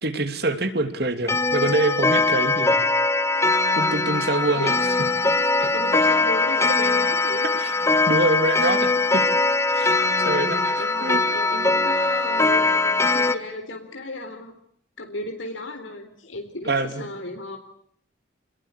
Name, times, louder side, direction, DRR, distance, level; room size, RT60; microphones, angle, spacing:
voice 1, 0.0-2.8 3.7-4.7 7.6-7.8 8.1-9.2 9.7-11.2 16.7-17.0, right 2 dB, 55° right, 9 dB, 3.1 m, -25 dB
Clock, 1.3-13.3, left 3 dB, 15° left, 1.5 m, -21 dB
voice 2, 4.5-4.8 5.6-7.6 10.2-14.6 15.0-17.6, left 2 dB, 85° left, 4 dB, 4.0 m, -35 dB
29.5 x 21.0 x 8.4 m, 0.67 s
head